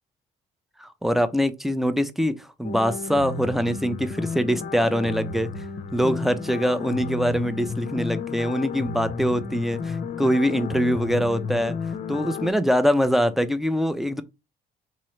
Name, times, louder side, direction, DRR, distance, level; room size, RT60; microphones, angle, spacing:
voice 1, 0.8-5.6 5.9-11.8 12.1-14.2, equal, ahead, 0.5 m, -23 dB
sound 1, 2.6-12.5, left 5 dB, 50° left, 0.6 m, -32 dB
3.8 x 2.9 x 3.1 m
cardioid pair, 110°, 17 cm